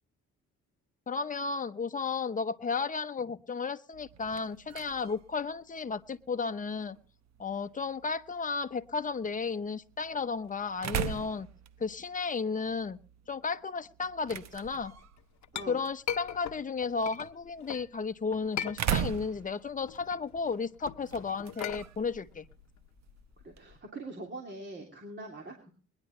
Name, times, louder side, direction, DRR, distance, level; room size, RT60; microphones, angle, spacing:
voice 1, 1.1-7.0 7.4-11.5 11.8-13.0 13.3-14.9 15.7-22.4, left 4 dB, 25° left, 10 dB, 0.9 m, -33 dB
sound 1, 3.9-23.8, right 9 dB, 65° right, 1.0 m, -41 dB
Chink clink, 15.0-17.9 18.3-19.4 19.7-23.8, left 10 dB, 65° left, 0.8 m, -40 dB
voice 2, 23.4-25.7, right 2 dB, 35° right, 1 dB, 3.0 m, -43 dB
22.0 x 10.5 x 3.2 m, 0.38 s
cardioid pair, 90°, 30 cm